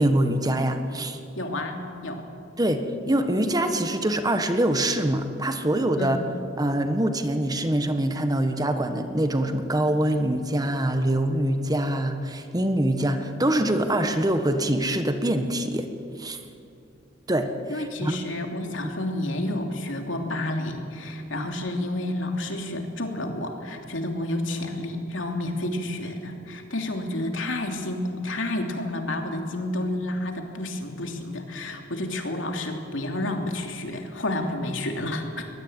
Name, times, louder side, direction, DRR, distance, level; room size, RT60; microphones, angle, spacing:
voice 1, 0.0-1.2 2.6-6.2 6.6-15.9 16.2-16.4 17.3-18.2 21.3-21.5, right 1 dB, 20° right, 7 dB, 1.5 m, -24 dB
voice 2, 1.4-2.3 6.0-6.2 17.7-35.5, left 1 dB, 80° left, 3 dB, 3.0 m, -30 dB
22.0 x 21.0 x 9.0 m, 2.6 s
head